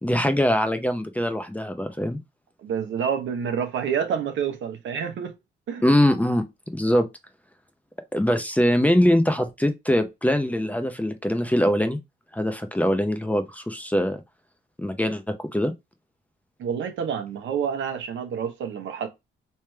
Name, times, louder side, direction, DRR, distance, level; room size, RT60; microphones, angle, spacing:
voice 1, 0.0-2.2 5.8-6.4 6.7-7.0 8.1-12.0 12.3-14.2 14.8-15.7, equal, 5° left, 0.6 m, -22 dB
voice 2, 2.6-5.3 5.7-5.9 16.6-19.1, right 7 dB, 75° right, 0.9 m, -28 dB
3.3 x 3.2 x 3.3 m
cardioid pair, 90°, 20 cm